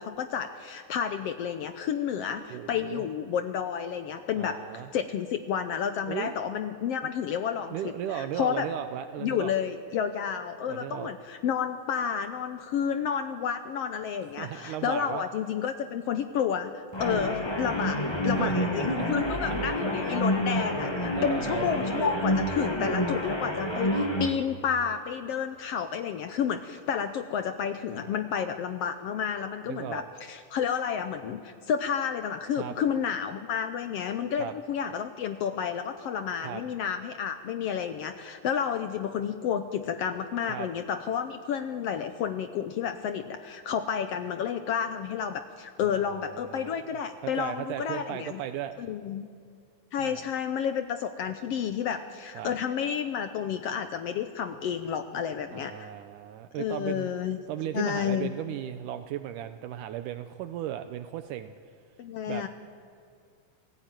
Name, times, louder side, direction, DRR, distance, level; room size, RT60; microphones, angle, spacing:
voice 1, 0.0-4.6 4.9-8.7 9.2-18.0 18.2-48.4 48.8-49.3 49.9-55.9 56.6-57.4 57.7-58.3 62.0-62.5, left 8 dB, 80° left, 8 dB, 1.4 m, -31 dB
voice 2, 2.5-3.1 4.4-4.9 6.1-6.4 7.0-7.1 7.7-9.5 10.6-11.1 14.4-15.2 17.1-17.4 18.4-19.7 21.1-21.7 27.9-28.2 29.7-30.0 32.5-32.8 34.4-34.5 36.4-36.6 40.5-40.7 45.8-46.8 47.2-48.8 50.0-50.2 52.3-52.5 55.5-57.1 57.5-61.5 62.3-62.4, right 11 dB, 80° right, 9 dB, 2.2 m, -36 dB
sound 1, 16.9-24.3, left 1 dB, 20° left, 0.7 m, -28 dB
27.5 x 16.5 x 9.0 m, 2.2 s
omnidirectional pair, 3.8 m